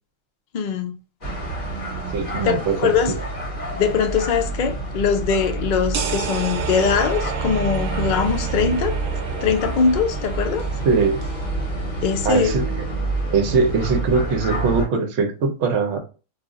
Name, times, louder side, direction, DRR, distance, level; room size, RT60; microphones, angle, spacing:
voice 1, 0.5-0.9 2.4-3.2 3.8-9.0 9.4-10.7 12.0-12.6, left 6 dB, 65° left, 0.4 m, -21 dB
sound 1, 1.2-14.8, right 3 dB, 35° left, 1.2 m, -28 dB
voice 2, 2.1-3.2 10.9-11.2 12.2-12.6 13.3-16.0, right 4 dB, 65° right, 0.9 m, -21 dB
sound 2, 5.9-11.5, right 7 dB, 90° right, 1.0 m, -32 dB
2.4 x 2.4 x 3.8 m
omnidirectional pair, 1.3 m